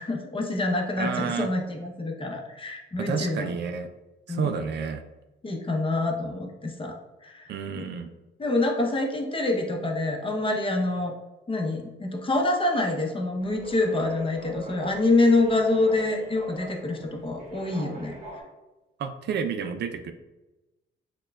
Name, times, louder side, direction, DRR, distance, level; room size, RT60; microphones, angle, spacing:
voice 1, 0.0-3.5 4.3-4.5 5.4-7.0 7.2-7.5 7.8-7.9 8.4-11.1 11.5-18.1, left 2 dB, 25° left, 1 dB, 0.7 m, -26 dB
voice 2, 1.0-1.5 3.0-3.9 4.3-5.0 7.5-8.1 19.0-20.1, right 6 dB, 60° right, 7 dB, 0.4 m, -30 dB
sound 1, 13.4-18.4, right 1 dB, 35° right, 1.4 m, -41 dB
6.3 x 2.2 x 2.3 m, 1.0 s
cardioid pair, 90°, 20 cm